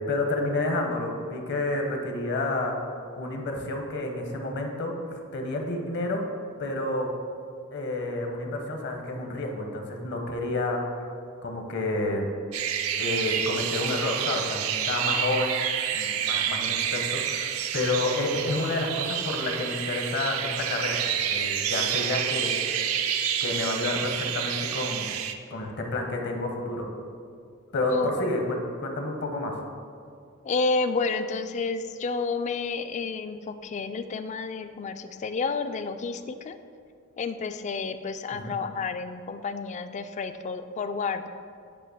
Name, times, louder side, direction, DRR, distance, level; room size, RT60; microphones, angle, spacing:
voice 1, 0.1-6.2 6.6-7.1 7.7-11.1 11.4-12.3 13.0-15.6 15.9-22.6 23.4-25.1 25.5-26.9 27.7-29.5 38.4-38.6, left 2 dB, 55° left, 2 dB, 0.9 m, -30 dB
sound 1, 12.5-25.3, right 9 dB, 75° right, 0.4 m, -29 dB
voice 2, 27.9-28.3 30.4-36.6 37.2-41.3, left 4 dB, 35° left, 10 dB, 0.3 m, -30 dB
8.6 x 2.9 x 6.3 m, 2.3 s
head